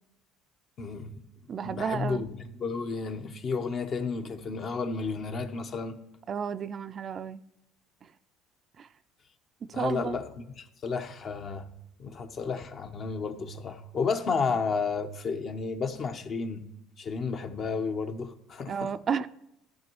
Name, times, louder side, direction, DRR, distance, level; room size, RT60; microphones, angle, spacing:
voice 1, 0.8-1.1 1.6-6.0 9.7-11.7 12.0-16.7 17.0-18.9, left 5 dB, 45° left, 0.9 m, -32 dB
voice 2, 1.5-2.2 6.3-7.4 8.0-8.1 8.8-8.9 9.7-10.2 18.7-19.3, right 6 dB, 40° right, 0.3 m, -32 dB
14.5 x 6.0 x 3.1 m
supercardioid pair, 95°, 0 cm